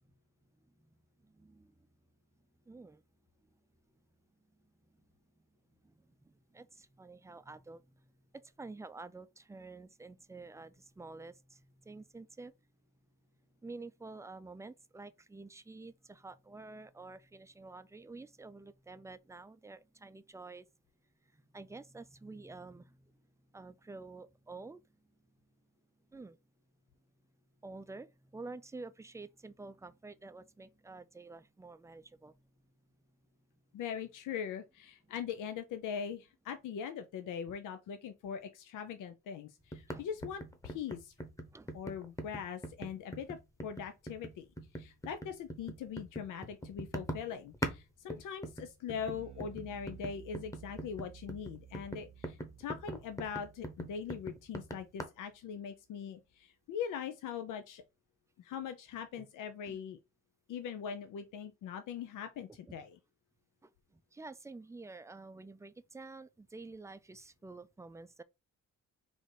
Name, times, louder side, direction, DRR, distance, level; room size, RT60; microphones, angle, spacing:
voice 1, 0.6-1.9 2.7-3.0 3.4-3.6 5.8-12.5 13.6-20.7 21.2-23.3 23.5-24.9 26.1-26.4 27.6-32.5 39.9-40.0 41.5-41.7 59.2-59.3 59.7-59.8 62.5-62.8 63.6-68.2, right 3 dB, 10° right, 0.4 m, -50 dB
voice 2, 33.7-41.1 41.7-44.5 44.7-57.8 58.4-60.0 60.5-63.0, left 7 dB, 85° left, 0.6 m, -41 dB
sound 1, 39.7-47.8 48.1-55.0, equal, 10° left, 1.0 m, -42 dB
Bass guitar, 48.9-55.3, right 10 dB, 75° right, 0.6 m, -55 dB
4.1 x 2.6 x 4.7 m
cardioid pair, 90°, 30 cm